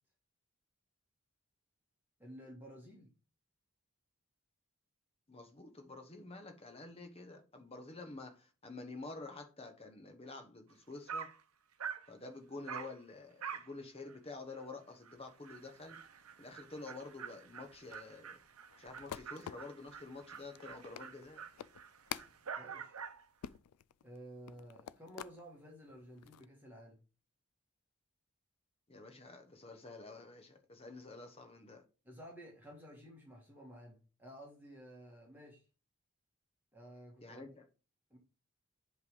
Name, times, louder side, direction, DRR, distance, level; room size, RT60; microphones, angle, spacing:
voice 1, 2.2-3.1 22.6-23.0 24.0-27.0 32.0-35.6 36.7-37.6 38.1-38.2, equal, 10° right, 1.6 m, -53 dB
voice 2, 5.3-11.3 12.1-16.0 16.4-18.4 18.8-21.4 28.9-31.8 37.2-37.6, left 3 dB, 25° left, 1.0 m, -49 dB
Dog, 10.7-10.8 11.1-11.4 11.8-12.1 12.7-13.0 13.4-13.7 14.1-14.2 14.6-14.7 15.0-15.1 15.4-23.3, right 6 dB, 80° right, 0.8 m, -47 dB
sound 1, 17.9-25.4 25.9-26.5, left 10 dB, 90° left, 0.4 m, -49 dB
8.0 x 3.3 x 5.3 m
head